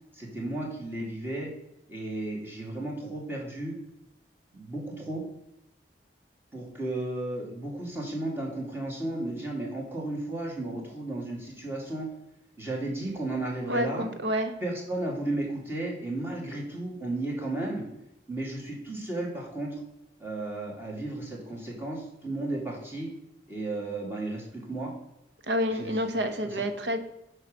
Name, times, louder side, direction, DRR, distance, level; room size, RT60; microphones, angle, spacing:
voice 1, 0.1-1.5 1.9-3.7 4.5-5.2 6.5-12.1 12.6-14.1 14.6-17.8 18.3-19.8 20.2-23.1 23.5-24.9 25.7-26.2, right 2 dB, 15° right, -3 dB, 2.1 m, -34 dB
voice 2, 13.7-14.5 25.5-27.0, equal, 75° right, 8 dB, 1.0 m, -28 dB
7.2 x 4.9 x 6.4 m, 0.86 s
head